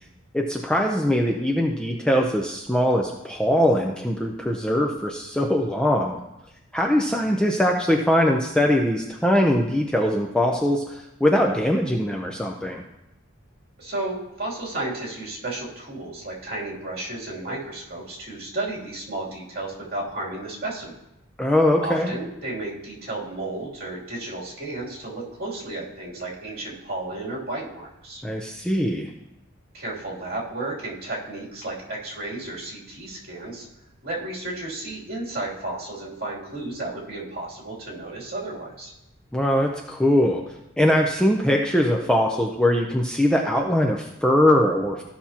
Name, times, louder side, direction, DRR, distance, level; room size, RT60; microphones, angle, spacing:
voice 1, 0.3-6.2 6.7-12.8 21.4-22.1 28.2-29.1 39.3-40.4 40.8-45.0, left 1 dB, 5° left, 1 dB, 0.5 m, -21 dB
voice 2, 13.8-21.0 21.8-28.2 29.7-33.7 34.0-38.9, right 2 dB, 45° right, -5 dB, 2.8 m, -33 dB
14.0 x 5.8 x 2.8 m, 0.87 s
head